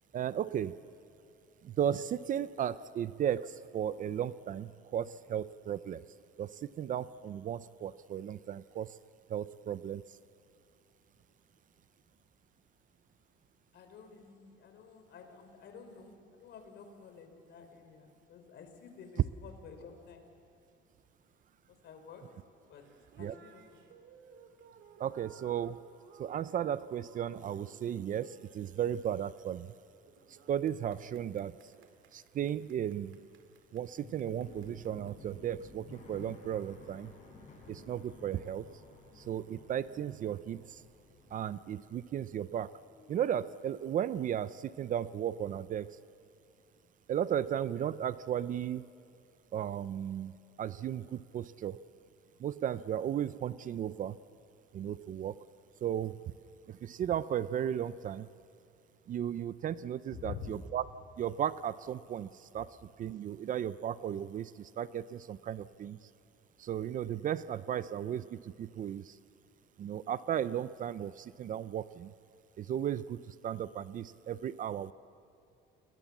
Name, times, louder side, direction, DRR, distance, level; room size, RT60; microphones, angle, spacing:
voice 1, 0.1-0.8 1.6-6.0 6.4-9.0 9.3-10.0 23.2-23.3 25.0-25.8 26.2-29.7 30.5-33.2 33.7-37.1 37.7-38.7 39.2-40.8 41.3-42.7 43.1-46.0 47.1-48.8 49.5-50.3 50.6-51.8 52.4-54.2 54.7-55.3 55.8-56.2 56.7-58.3 59.1-60.8 61.2-62.7 63.0-66.0 66.6-69.2 69.8-72.1 72.6-74.9, right 10 dB, 40° right, 16 dB, 0.5 m, -35 dB
voice 2, 13.7-20.2 21.8-22.2 22.7-22.9 23.1-23.8 60.1-60.6, left 7 dB, 60° left, 6 dB, 4.2 m, -49 dB
sound 1, 22.5-36.1, right 7 dB, 70° right, 2.8 m, -61 dB
sound 2, 32.8-42.6 42.9-43.7, left 3 dB, 35° left, 6.4 m, -55 dB
30.0 x 21.5 x 7.3 m, 2.7 s
cardioid pair, 160°, 20 cm